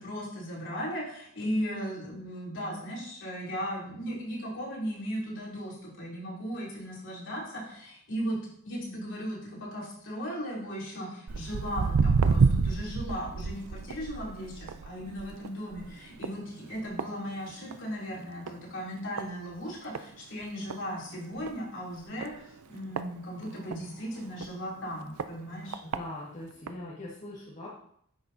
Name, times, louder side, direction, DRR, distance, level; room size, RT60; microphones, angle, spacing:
voice 1, 0.0-8.4 8.6-25.8, equal, 60° left, -5 dB, 3.0 m, -37 dB
Walk footsteps, 11.3-17.9 18.3-18.6 19.2-19.3 19.9-20.0 20.4-20.5 20.7-20.8 21.4-21.6 22.2-23.8 24.4-24.5 25.2-25.3 25.7-26.0 26.7-26.8, right 5 dB, 90° right, 0.5 m, -28 dB
voice 2, 25.8-27.7, left 1 dB, 30° left, -7 dB, 1.5 m, -41 dB
9.7 x 6.3 x 2.7 m, 0.67 s
head